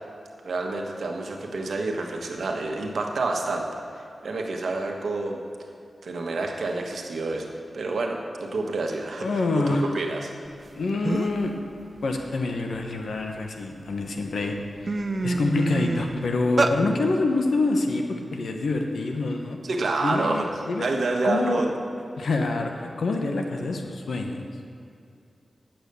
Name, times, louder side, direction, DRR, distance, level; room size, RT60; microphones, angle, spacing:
voice 1, 0.4-3.6 3.9-5.4 6.0-10.3 19.6-20.5 20.8-21.7, right 3 dB, 80° right, 2 dB, 1.3 m, -28 dB
voice 2, 9.2-9.9 10.7-11.5 12.0-14.5 14.8-19.6 20.0-20.9 21.2-21.6 22.2-24.4, left 3 dB, 85° left, 3 dB, 1.0 m, -26 dB
sound 1, 10.7-10.8 11.0-11.5 11.9-13.5 14.1-14.2 14.5-16.8, right 3 dB, 50° right, 0.6 m, -27 dB
9.0 x 8.0 x 6.8 m, 2.6 s
cardioid pair, 45°, 0 cm